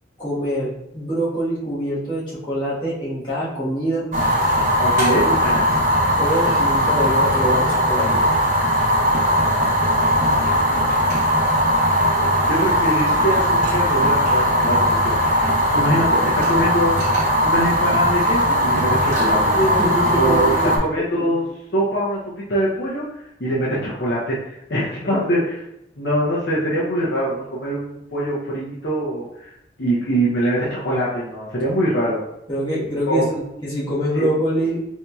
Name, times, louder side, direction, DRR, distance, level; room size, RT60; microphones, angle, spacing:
voice 1, 0.2-4.1 6.2-8.2 15.6-15.7 19.5-21.4 32.5-34.8, equal, 25° left, -10 dB, 1.3 m, -24 dB
Fire, 4.1-20.8, equal, 40° right, 0.7 m, -19 dB
voice 2, 4.8-5.8 10.1-10.9 12.5-16.9 17.4-19.5 20.1-21.4 21.7-23.0 23.4-25.6 26.0-29.5 29.8-32.2 33.1-33.3 34.1-34.3, right 1 dB, 60° left, -6 dB, 0.6 m, -23 dB
4.3 x 2.7 x 2.3 m, 0.83 s
head